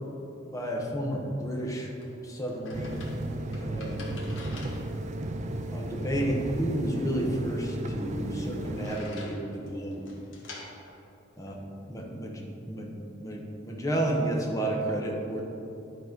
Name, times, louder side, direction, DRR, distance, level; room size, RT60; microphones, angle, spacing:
voice 1, 0.4-1.9 2.2-3.1 3.6-4.3 5.7-10.0 11.4-11.6 11.9-15.4, right 1 dB, 15° left, -1 dB, 1.0 m, -31 dB
sound 1, 1.3-12.1, left 2 dB, 75° left, 1.5 m, -50 dB
sound 2, 2.7-9.0, right 1 dB, 35° right, 0.4 m, -34 dB
11.0 x 4.2 x 5.2 m, 2.9 s
head